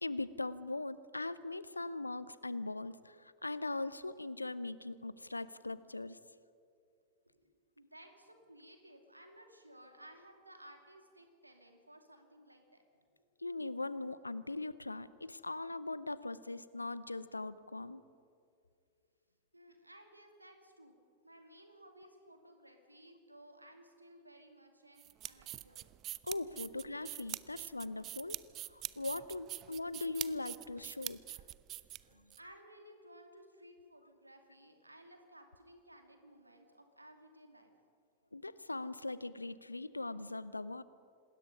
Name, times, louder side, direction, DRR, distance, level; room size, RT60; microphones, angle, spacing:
voice 1, 0.0-6.2 13.4-18.0 26.2-28.4 28.7-31.2 38.3-40.8, left 2 dB, 85° left, 17 dB, 0.7 m, -40 dB
voice 2, 7.3-12.8 13.2-13.3 19.5-20.9 21.2-25.8 32.4-37.7, right 1 dB, 85° right, 5 dB, 2.5 m, -58 dB
sound 1, 25.0-32.4, right 14 dB, 35° right, 0.5 m, -44 dB
27.0 x 20.0 x 5.5 m, 2.3 s
figure-of-eight pair, 90°, 0 cm